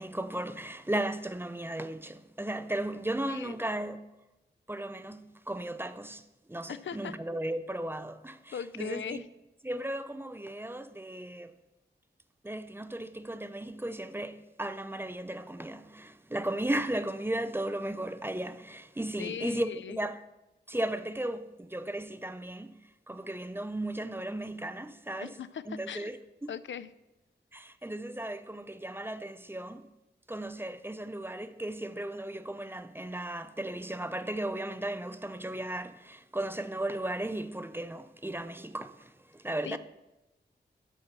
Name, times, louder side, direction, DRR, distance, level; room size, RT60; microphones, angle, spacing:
voice 1, 0.0-4.0 4.7-6.2 6.5-9.2 9.6-11.5 12.4-20.2 20.7-22.8 23.1-25.4 25.7-26.5 27.5-29.9 30.3-39.8, right 1 dB, 10° right, 0.5 m, -35 dB
voice 2, 6.7-7.1 8.5-9.2 19.2-20.0 25.2-26.1 26.5-26.9 39.7-39.8, left 8 dB, 90° left, 0.4 m, -39 dB
12.5 x 4.3 x 5.9 m
wide cardioid pair, 70°, 19 cm